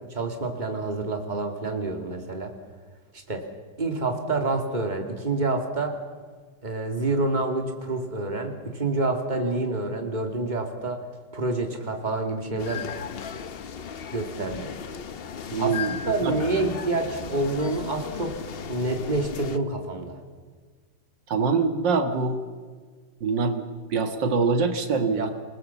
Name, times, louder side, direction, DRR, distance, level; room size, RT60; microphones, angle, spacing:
voice 1, 0.1-2.5 3.3-3.4 3.8-5.9 6.6-11.0 11.3-12.9 14.1-14.7 15.6-18.3 18.7-20.2 25.2-25.3, right 2 dB, 25° right, 4 dB, 2.6 m, -27 dB
sound 1, 12.6-19.6, left 7 dB, 50° left, 0.7 m, -36 dB
voice 2, 15.5-16.4 21.3-22.4 23.2-23.7 23.9-25.3, right 4 dB, 80° right, 7 dB, 2.2 m, -24 dB
27.5 x 19.5 x 7.2 m, 1.6 s
omnidirectional pair, 1.9 m